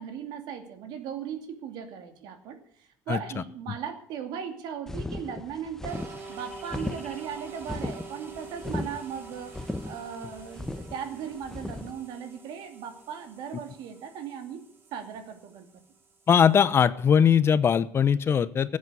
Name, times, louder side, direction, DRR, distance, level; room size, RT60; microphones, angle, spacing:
voice 1, 0.0-14.7 14.9-15.7, right 7 dB, 75° right, 7 dB, 2.7 m, -38 dB
sound 1, 4.9-11.9, left 1 dB, 5° left, 0.9 m, -36 dB
sound 2, 5.9-16.6, right 3 dB, 30° right, 2.6 m, -47 dB
voice 2, 16.3-18.8, left 7 dB, 35° left, 15 dB, 0.7 m, -20 dB
17.0 x 8.6 x 8.1 m, 0.62 s
cardioid pair, 140°, 7 cm